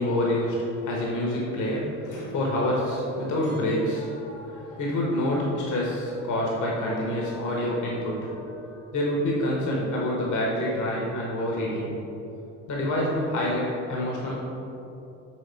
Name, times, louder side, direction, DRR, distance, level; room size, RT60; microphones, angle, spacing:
voice 1, 0.0-12.0 12.7-14.3, left 1 dB, 55° left, -3 dB, 1.2 m, -27 dB
6.3 x 3.7 x 4.5 m, 2.9 s
hypercardioid pair, 55°, 36 cm